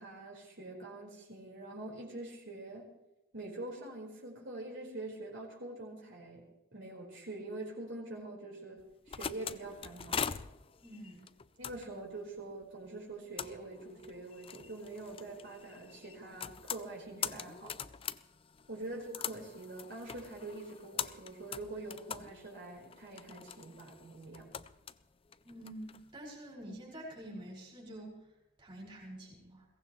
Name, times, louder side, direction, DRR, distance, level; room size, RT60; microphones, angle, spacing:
voice 1, 0.0-2.9 3.3-6.5 6.7-8.8 9.1-10.3 11.6-17.8 18.7-24.5, right 2 dB, 55° right, -3 dB, 4.6 m, -45 dB
sound 1, 8.8-26.0, left 7 dB, 25° left, 0.4 m, -43 dB
voice 2, 10.8-11.3 25.4-28.2 28.6-29.7, right 1 dB, 20° right, -4 dB, 5.4 m, -47 dB
22.0 x 17.5 x 3.2 m, 0.94 s
head